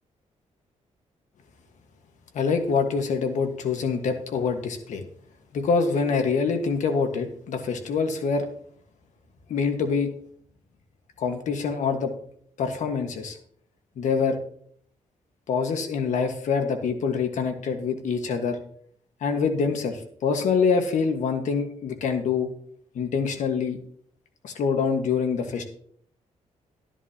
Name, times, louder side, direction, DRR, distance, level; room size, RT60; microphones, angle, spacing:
voice 1, 2.3-5.0 5.5-8.5 9.5-10.1 11.2-12.1 12.6-13.4 14.0-14.4 15.5-18.6 19.2-22.5 22.9-23.8 24.4-25.7, left 5 dB, 75° left, 5 dB, 1.5 m, -25 dB
13.0 x 11.0 x 2.9 m, 0.62 s
cardioid pair, 130°, 13 cm